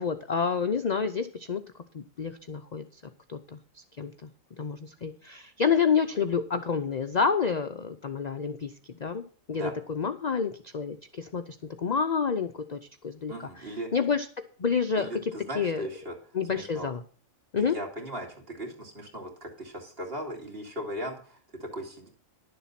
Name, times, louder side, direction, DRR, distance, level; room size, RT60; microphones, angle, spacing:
voice 1, 0.0-1.6 1.9-3.0 3.3-4.3 4.6-8.7 9.0-14.3 14.6-15.8 16.3-17.0 17.5-17.8, left 6 dB, 50° left, 9 dB, 0.5 m, -29 dB
voice 2, 13.3-13.9 15.0-16.2 16.5-16.9 17.6-22.1, equal, 45° right, 1 dB, 2.7 m, -38 dB
11.5 x 7.2 x 5.8 m, 0.42 s
omnidirectional pair, 1.4 m